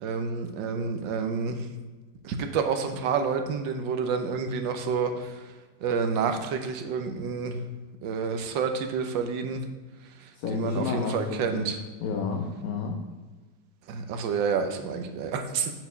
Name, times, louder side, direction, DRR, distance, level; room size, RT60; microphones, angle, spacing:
voice 1, 0.0-1.6 2.2-5.4 5.8-7.6 8.0-9.6 10.5-11.8 13.9-15.7, right 5 dB, 85° right, 6 dB, 1.5 m, -29 dB
voice 2, 10.3-11.7 12.0-13.0, left 5 dB, 60° left, 1 dB, 1.2 m, -30 dB
8.2 x 4.6 x 5.5 m, 1.3 s
omnidirectional pair, 2.0 m